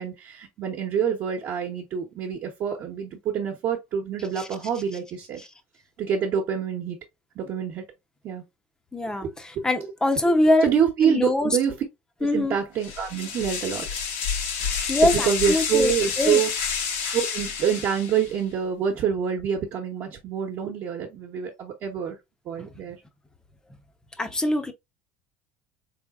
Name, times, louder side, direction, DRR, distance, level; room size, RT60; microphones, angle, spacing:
voice 1, 0.0-5.4 6.0-7.0 7.3-7.9 8.2-8.4 9.2-9.7 10.2-10.3 10.6-11.8 12.2-13.8 15.0-16.5 17.1-22.2 22.4-23.0, right 7 dB, 50° right, 1.0 m, -26 dB
voice 2, 8.9-9.3 9.6-10.7 11.0-11.6 12.2-12.6 14.9-16.4 22.6-22.7 24.2-24.7, left 1 dB, 10° left, 0.7 m, -23 dB
sound 1, 12.8-18.4, left 6 dB, 85° left, 1.5 m, -29 dB
3.8 x 3.5 x 2.4 m
cardioid pair, 125°, 6 cm